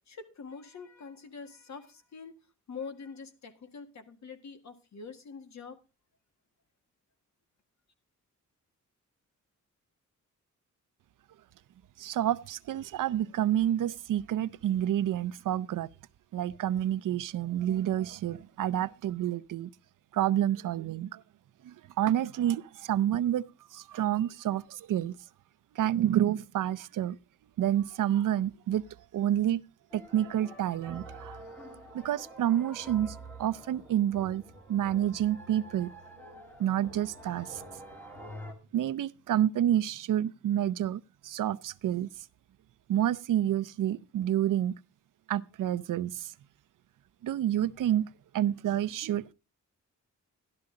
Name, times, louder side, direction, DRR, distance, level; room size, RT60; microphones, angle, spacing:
voice 1, 0.0-2.3 2.7-5.8, left 5 dB, 60° left, 1.8 m, -45 dB
voice 2, 12.0-15.9 16.3-19.7 20.1-21.2 21.6-23.4 23.7-25.2 25.7-27.2 27.6-28.9 29.1-29.6 29.9-31.4 31.9-34.4 34.7-35.9 36.6-37.6 38.7-42.1 42.9-44.8 45.3-46.3 47.2-49.3, right 11 dB, 90° right, 0.6 m, -29 dB
sound 1, 29.9-38.5, right 1 dB, 5° left, 2.1 m, -47 dB
12.5 x 12.0 x 3.8 m
wide cardioid pair, 170°, 31 cm